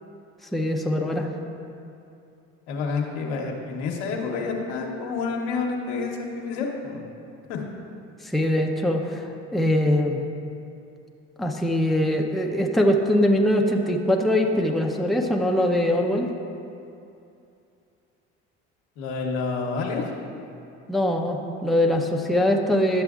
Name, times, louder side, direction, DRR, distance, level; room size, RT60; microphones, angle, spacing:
voice 1, 0.5-1.3 8.2-10.2 11.4-16.3 20.9-23.0, left 1 dB, ahead, 1 dB, 0.6 m, -22 dB
voice 2, 2.7-7.0 7.5-7.7 19.0-20.0, left 4 dB, 80° left, 0 dB, 1.0 m, -29 dB
11.5 x 6.8 x 2.4 m, 2.6 s
hypercardioid pair, 70°, 34 cm